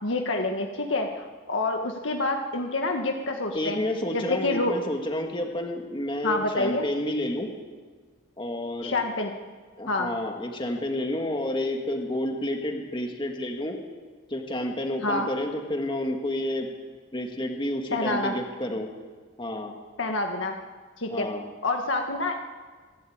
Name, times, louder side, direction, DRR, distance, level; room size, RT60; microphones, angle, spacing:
voice 1, 0.0-3.8 4.1-4.7 6.2-6.9 8.8-9.3 9.9-10.1 15.0-15.3 17.9-18.3 20.0-20.5 21.0-21.3 21.6-22.4, left 2 dB, 75° left, 3 dB, 1.6 m, -27 dB
voice 2, 3.5-7.5 8.4-8.9 9.8-13.8 14.3-16.7 17.1-18.9 19.4-19.7 21.1-21.5, left 1 dB, 25° left, 3 dB, 1.8 m, -30 dB
26.0 x 12.5 x 8.7 m, 1.5 s
head